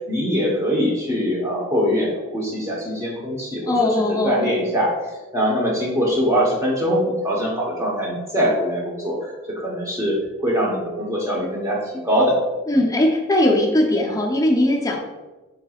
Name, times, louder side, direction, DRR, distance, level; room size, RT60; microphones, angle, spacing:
voice 1, 0.1-3.7 4.2-4.9 5.3-12.4, equal, 15° right, -3 dB, 0.9 m, -22 dB
voice 2, 3.7-4.5 12.7-15.0, left 1 dB, 15° left, 0 dB, 0.5 m, -19 dB
4.8 x 4.5 x 2.4 m, 1.2 s
head